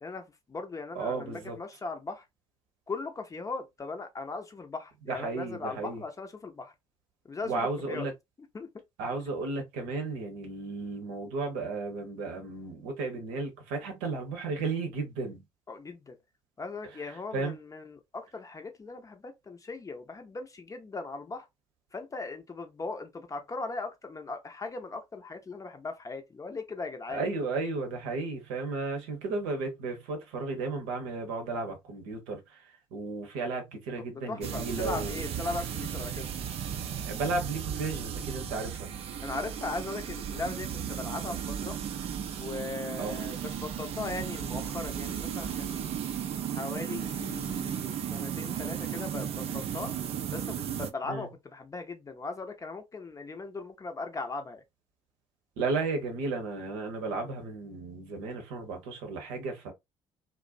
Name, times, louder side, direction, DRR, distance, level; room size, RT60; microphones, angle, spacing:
voice 1, 0.0-2.2 2.9-6.7 7.2-8.1 8.5-8.7 15.7-16.2 16.6-21.5 21.9-27.3 34.0-36.3 39.2-41.8 42.4-46.0 46.6-49.9 50.3-54.6, left 3 dB, 25° left, 0.6 m, -39 dB
voice 2, 0.9-1.6 5.1-6.0 7.4-8.1 9.0-15.4 17.3-17.6 27.1-32.4 32.9-35.2 37.1-38.9 43.0-43.1 51.1-51.3 55.6-59.7, right 3 dB, 70° right, 0.8 m, -34 dB
sound 1, 34.4-50.9, right 9 dB, 45° right, 0.4 m, -35 dB
2.5 x 2.1 x 2.4 m
figure-of-eight pair, 50°, 14 cm